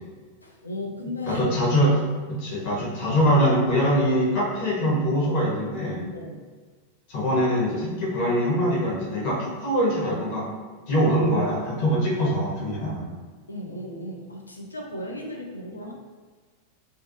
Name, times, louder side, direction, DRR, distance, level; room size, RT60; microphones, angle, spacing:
voice 1, 0.4-1.4 6.1-6.5 13.5-15.9, left 1 dB, 80° left, -1 dB, 0.3 m, -35 dB
voice 2, 1.3-2.0 2.3-6.1 7.1-10.4 10.9-13.1, equal, 45° left, -5 dB, 0.9 m, -23 dB
2.3 x 2.2 x 2.6 m, 1.4 s
figure-of-eight pair, 90°, 0 cm